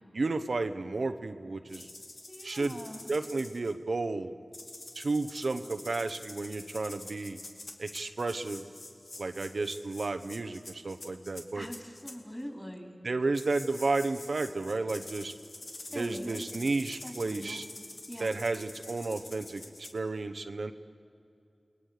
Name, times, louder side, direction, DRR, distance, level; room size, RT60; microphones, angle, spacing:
voice 1, 0.1-1.9 2.4-2.8 3.1-4.3 4.9-7.4 7.8-8.6 9.2-11.7 13.0-15.3 15.9-17.6 18.2-20.7, right 3 dB, 80° right, 8 dB, 0.9 m, -32 dB
sound 1, 1.7-3.7 4.5-12.1 13.3-19.9, left 2 dB, 75° left, 2.5 m, -47 dB
voice 2, 2.3-3.1 11.5-13.0 15.9-16.4 17.0-17.6 18.1-18.3, equal, 10° left, 3 dB, 4.0 m, -42 dB
29.5 x 20.0 x 6.7 m, 2.5 s
wide cardioid pair, 55°, 0 cm